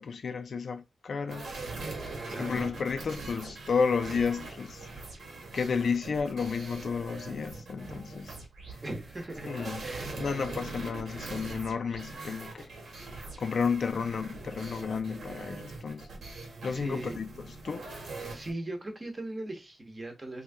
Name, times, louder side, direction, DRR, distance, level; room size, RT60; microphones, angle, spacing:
voice 1, 0.0-1.5 2.4-4.9 5.5-8.4 9.4-9.8 10.2-12.7 13.1-16.1 16.6-17.9, left 5 dB, 60° left, 0.4 m, -32 dB
sound 1, 1.3-18.5, right 3 dB, 85° right, 1.4 m, -42 dB
voice 2, 2.2-2.7 8.8-10.2 16.7-17.2 18.3-20.4, right 1 dB, 25° right, 0.9 m, -39 dB
3.0 x 2.7 x 3.4 m
wide cardioid pair, 110°, 0 cm